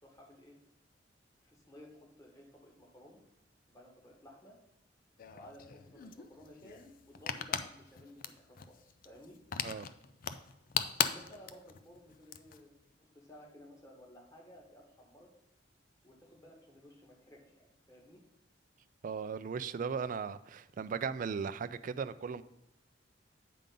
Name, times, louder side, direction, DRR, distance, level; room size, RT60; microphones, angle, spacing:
voice 1, 0.0-0.6 1.4-3.2 3.7-4.6 5.3-9.4 11.0-12.7 13.0-15.3 16.0-18.2, left 1 dB, 20° left, -1 dB, 1.7 m, -56 dB
sound 1, 5.2-12.6, left 8 dB, 50° left, 0.4 m, -38 dB
voice 2, 19.0-22.4, right 6 dB, 45° right, 13 dB, 0.3 m, -37 dB
8.6 x 3.8 x 5.2 m, 0.89 s
head